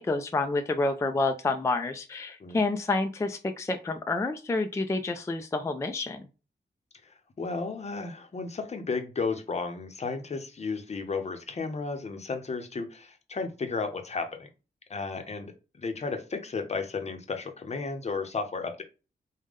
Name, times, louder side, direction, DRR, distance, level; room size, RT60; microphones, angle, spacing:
voice 1, 0.0-6.3, left 3 dB, 15° left, 7 dB, 0.3 m, -29 dB
voice 2, 7.0-14.5 14.9-18.8, left 4 dB, 40° left, 6 dB, 0.7 m, -33 dB
5.0 x 2.1 x 3.5 m, 0.32 s
wide cardioid pair, 155°, 17 cm